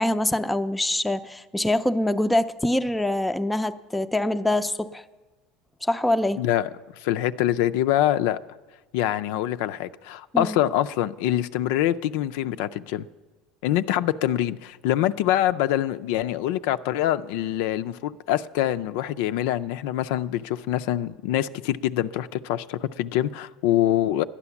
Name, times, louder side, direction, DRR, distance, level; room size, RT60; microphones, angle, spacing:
voice 1, 0.0-5.0 5.8-6.4 10.3-10.6, left 1 dB, 5° left, 0.4 m, -24 dB
voice 2, 6.4-6.7 7.0-8.4 8.9-13.1 13.6-24.2, left 12 dB, 80° left, 0.4 m, -25 dB
12.0 x 9.8 x 7.1 m
supercardioid pair, 125°, 0 cm